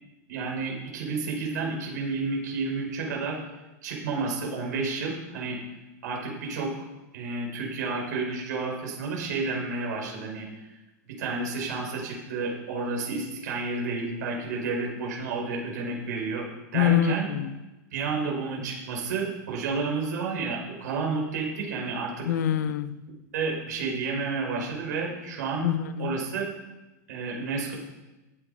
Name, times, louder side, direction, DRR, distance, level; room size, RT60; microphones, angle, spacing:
voice 1, 0.3-3.4 3.8-5.6 6.0-6.9 7.1-10.6 11.2-17.3 17.9-22.3 23.3-25.7 26.0-26.5 27.1-27.7, right 4 dB, 80° right, 5.3 m, -31 dB
voice 2, 16.7-17.5 22.3-23.0 25.6-26.2, left 10 dB, 75° left, 0.8 m, -25 dB
15.0 x 9.5 x 4.3 m
supercardioid pair, 125°, 9 cm